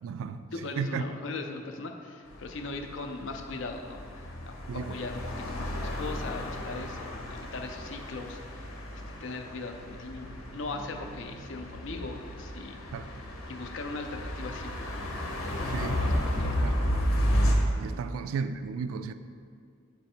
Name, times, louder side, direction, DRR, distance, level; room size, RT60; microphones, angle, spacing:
voice 1, 0.0-0.4 0.8-1.1 4.7-5.1 12.9-13.2 15.7-15.9 16.4-16.9 17.8-19.1, right 5 dB, 85° right, 0.3 m, -34 dB
voice 2, 0.5-12.8 13.5-15.7 16.2-16.8, left 3 dB, 65° left, 0.5 m, -40 dB
sound 1, 2.3-17.6, equal, 90° left, 0.9 m, -32 dB
7.6 x 3.2 x 4.3 m
head